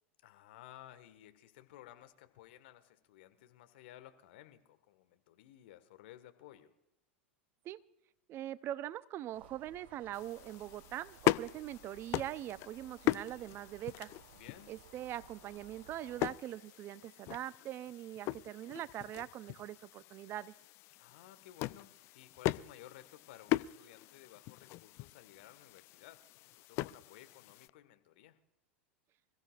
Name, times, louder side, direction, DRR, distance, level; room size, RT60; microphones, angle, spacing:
voice 1, 0.2-6.7 14.3-14.7 21.0-28.4, left 13 dB, 60° left, 9 dB, 1.5 m, -56 dB
voice 2, 8.3-14.1 14.7-20.5, right 12 dB, 40° right, 17 dB, 0.6 m, -42 dB
sound 1, 9.3-16.3, right 7 dB, 60° right, 2.8 m, -60 dB
sound 2, 10.1-27.7, left 18 dB, 45° left, 0.4 m, -40 dB
26.5 x 15.5 x 2.4 m, 0.89 s
hypercardioid pair, 90°, 6 cm